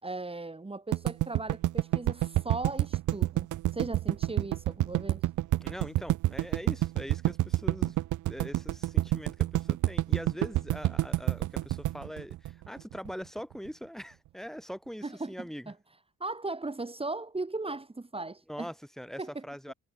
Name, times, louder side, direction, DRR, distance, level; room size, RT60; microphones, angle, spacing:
voice 1, 0.0-5.2 15.0-15.7 16.2-18.7 19.2-19.7, right 2 dB, 20° right, 5.6 m, -38 dB
sound 1, 0.9-13.1, right 15 dB, 75° right, 1.0 m, -28 dB
voice 2, 5.6-8.0 8.3-15.7 18.5-19.7, equal, ahead, 6.2 m, -42 dB
cardioid pair, 90°, 30 cm